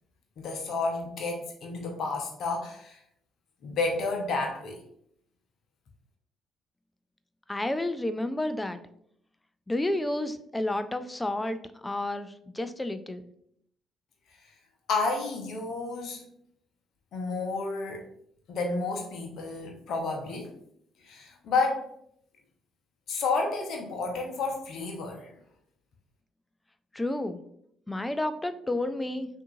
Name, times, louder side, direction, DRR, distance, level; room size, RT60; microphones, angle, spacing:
voice 1, 0.4-3.0 3.6-4.8 14.9-16.2 17.1-18.0 18.5-20.5 21.0-21.9 23.1-25.3, left 3 dB, 50° left, 1 dB, 0.8 m, -31 dB
voice 2, 7.5-8.8 9.7-13.3 26.9-27.4 27.9-29.3, left 1 dB, 10° left, 10 dB, 0.4 m, -31 dB
6.0 x 2.6 x 2.6 m, 0.71 s
figure-of-eight pair, 45°, 0 cm